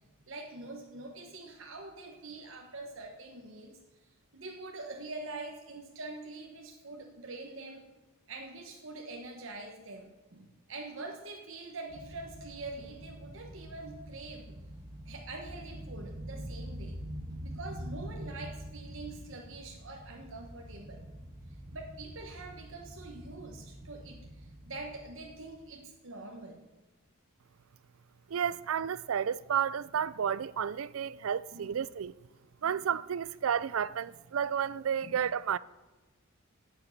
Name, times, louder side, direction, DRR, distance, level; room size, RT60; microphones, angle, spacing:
voice 1, 0.3-3.8 4.3-7.9 8.3-14.5 15.1-17.0 17.4-21.1 21.7-26.6 31.2-31.7 32.6-32.8 35.0-35.2, right 2 dB, 65° right, 1.2 m, -45 dB
sound 1, 11.9-25.7, right 1 dB, 20° right, 2.2 m, -45 dB
voice 2, 28.3-32.1 32.6-35.6, right 8 dB, 85° right, 0.4 m, -31 dB
9.1 x 8.0 x 8.5 m
head